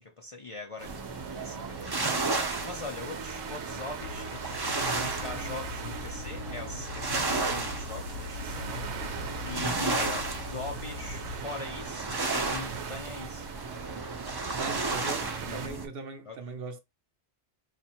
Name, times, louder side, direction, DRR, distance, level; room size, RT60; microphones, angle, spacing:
voice 1, 0.0-13.5 13.8-14.0 15.5-15.7 16.3-16.4, left 3 dB, 40° left, 0.5 m, -42 dB
sound 1, 0.8-15.9, right 3 dB, 25° right, 0.6 m, -34 dB
sound 2, 0.8-15.7, right 6 dB, 90° right, 0.9 m, -42 dB
sound 3, 4.0-11.4, left 4 dB, 75° left, 0.9 m, -42 dB
voice 2, 4.7-5.2 14.5-16.8, right 4 dB, 65° right, 0.8 m, -39 dB
2.6 x 2.5 x 4.2 m
omnidirectional pair, 1.1 m